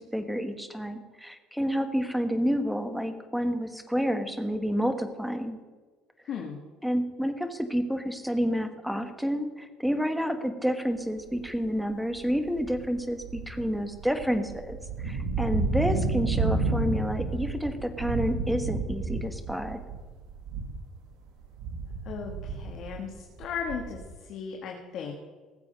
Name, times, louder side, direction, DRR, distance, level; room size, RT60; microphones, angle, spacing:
voice 1, 0.1-5.6 6.8-19.8, equal, ahead, 8 dB, 1.2 m, -29 dB
sound 1, 11.4-11.7 12.1-20.9 21.3-24.1, right 3 dB, 80° right, 2.1 m, -31 dB
voice 2, 22.1-25.1, left 6 dB, 55° left, 1 dB, 1.8 m, -36 dB
18.5 x 7.5 x 5.2 m, 1.3 s
cardioid pair, 125°, 0 cm